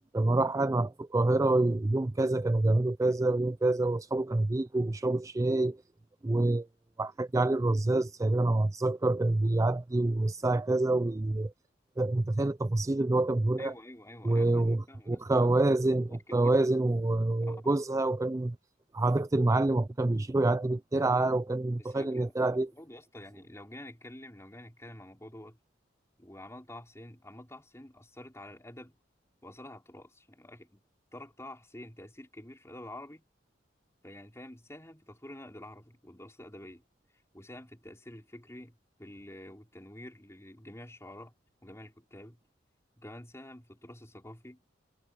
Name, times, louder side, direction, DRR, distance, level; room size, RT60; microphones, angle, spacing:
voice 1, 0.1-5.8 6.2-6.7 7.0-11.5 12.0-13.7 14.2-18.6 18.9-22.7, right 2 dB, 15° right, 0.4 m, -27 dB
voice 2, 13.6-15.5 15.9-16.6 17.5-17.6 21.8-22.3 22.7-25.6 26.2-28.9 29.4-30.8 31.1-33.3 34.0-36.8 37.3-41.3 41.6-42.4 43.0-44.6, left 1 dB, 15° left, 4.2 m, -48 dB
head